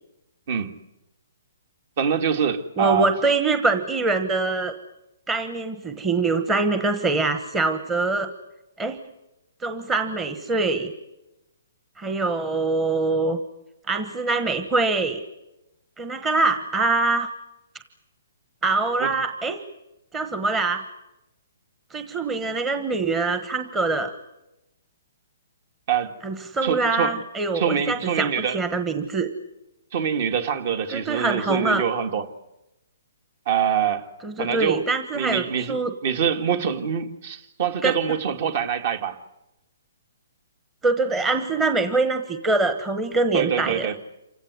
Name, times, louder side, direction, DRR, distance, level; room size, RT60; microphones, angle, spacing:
voice 1, 2.0-3.1 19.0-19.1 25.9-26.2 26.6-27.2 27.5-28.6 29.9-32.3 33.5-34.1 34.4-34.9 35.1-35.8 36.0-39.2 43.3-44.0, right 8 dB, 45° right, 1.9 m, -24 dB
voice 2, 2.8-4.7 5.3-8.3 8.8-9.0 9.6-10.9 12.0-13.4 13.9-15.2 16.0-17.3 18.6-19.6 20.1-20.9 21.9-24.1 26.2-29.3 30.9-31.8 34.2-35.9 37.8-37.9 40.8-43.9, right 3 dB, 10° right, 1.2 m, -24 dB
28.0 x 16.5 x 9.7 m
hypercardioid pair, 160°, 0 cm